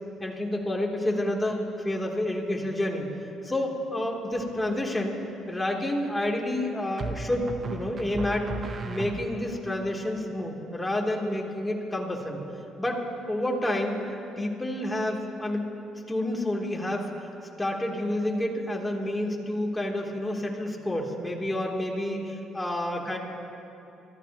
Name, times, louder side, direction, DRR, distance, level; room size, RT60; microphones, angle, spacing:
voice 1, 0.2-3.1 3.4-5.1 5.5-8.5 8.8-12.4 12.8-13.0 13.3-14.0 14.4-15.7 16.1-17.1 17.6-23.2, left 1 dB, 15° left, -1 dB, 3.3 m, -29 dB
sound 1, 4.3-4.9 7.0-9.6, right 3 dB, 45° right, 1.2 m, -36 dB
26.0 x 15.0 x 3.1 m, 2.8 s
hypercardioid pair, 55°, 0 cm